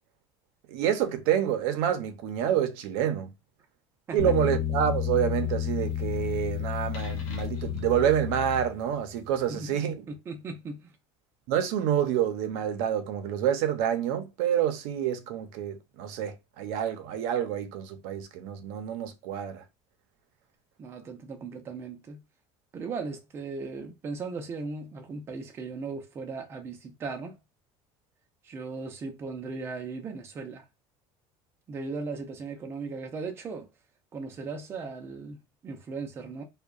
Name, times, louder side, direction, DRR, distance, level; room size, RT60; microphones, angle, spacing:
voice 1, 0.7-3.3 4.1-10.0 11.5-19.6, right 10 dB, 85° right, 0.5 m, -28 dB
sound 1, 4.2-9.1, left 10 dB, 70° left, 0.9 m, -31 dB
voice 2, 9.5-9.8 10.1-10.9 20.8-22.2 22.7-27.4 28.4-30.6 31.7-33.7 34.1-36.4, right 4 dB, 20° right, 0.4 m, -37 dB
2.7 x 2.1 x 2.3 m
cardioid pair, 170°, 12 cm